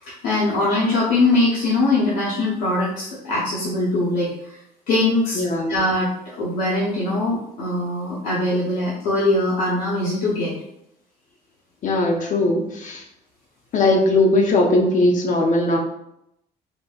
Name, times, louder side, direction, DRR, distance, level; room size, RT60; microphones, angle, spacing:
voice 1, 0.0-4.6 4.9-5.4 5.7-6.1 6.4-10.5, left 2 dB, 90° left, -7 dB, 0.8 m, -21 dB
voice 2, 5.3-5.8 11.8-13.0 13.7-15.8, left 2 dB, 50° left, 1 dB, 0.6 m, -19 dB
3.9 x 2.1 x 2.3 m, 0.80 s
cardioid pair, 110°, 17 cm